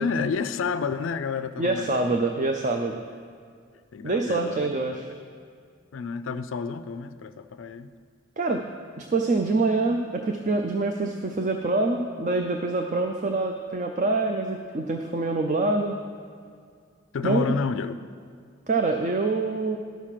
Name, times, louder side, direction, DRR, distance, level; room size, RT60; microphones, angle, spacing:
voice 1, 0.0-2.3 3.9-4.7 5.9-7.9 17.1-18.0, left 5 dB, 90° left, 11 dB, 0.4 m, -30 dB
voice 2, 1.6-3.0 4.0-5.1 8.4-8.6 9.0-16.0 17.2-17.6 18.7-19.8, right 3 dB, 40° right, 4 dB, 0.5 m, -25 dB
11.5 x 6.4 x 5.8 m, 2.2 s
head